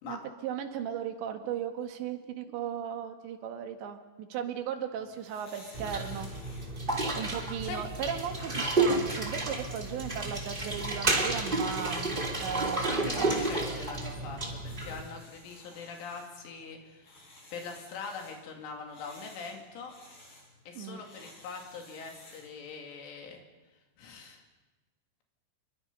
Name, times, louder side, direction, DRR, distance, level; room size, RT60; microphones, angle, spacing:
voice 1, 0.0-6.3 7.2-13.4 20.8-21.0, right 8 dB, 70° right, 5 dB, 3.8 m, -36 dB
sound 1, 4.9-22.6, left 1 dB, 60° left, 9.5 m, -56 dB
sound 2, 5.7-15.0, right 2 dB, 15° right, 2.2 m, -31 dB
voice 2, 12.9-17.3 17.5-19.9 20.7-23.4 24.0-24.4, left 5 dB, 80° left, 2 dB, 5.2 m, -42 dB
29.0 x 22.5 x 5.5 m, 1.2 s
omnidirectional pair, 5.6 m